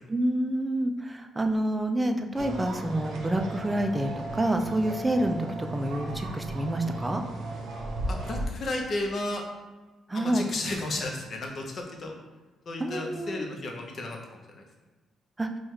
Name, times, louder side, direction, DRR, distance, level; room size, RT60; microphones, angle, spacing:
voice 1, 0.1-7.2 10.1-10.4 12.8-13.5 15.4-15.5, right 1 dB, 15° right, 5 dB, 0.4 m, -28 dB
sound 1, 2.4-8.5, right 2 dB, 75° right, 0.7 m, -36 dB
voice 2, 8.1-9.4 10.1-12.1 12.7-14.2 14.5-14.6, left 2 dB, 50° left, 1 dB, 0.7 m, -33 dB
4.4 x 2.3 x 3.1 m, 1.2 s
cardioid pair, 90°, 0 cm